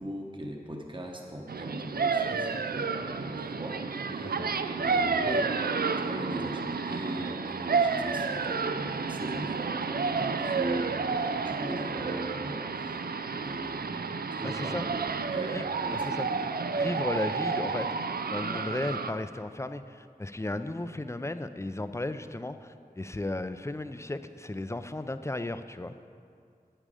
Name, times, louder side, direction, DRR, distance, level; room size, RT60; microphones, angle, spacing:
voice 1, 0.0-4.4 4.7-5.5 6.0-13.0 13.3-15.6 15.8-16.4, right 1 dB, 30° right, 1 dB, 1.0 m, -39 dB
sound 1, 1.5-19.1, right 5 dB, 85° right, 0.4 m, -31 dB
voice 2, 4.1-4.5 14.4-14.9 15.5-16.3 16.7-25.9, left 2 dB, 20° left, 10 dB, 0.4 m, -35 dB
8.9 x 8.8 x 5.0 m, 2.3 s
wide cardioid pair, 40°, 16 cm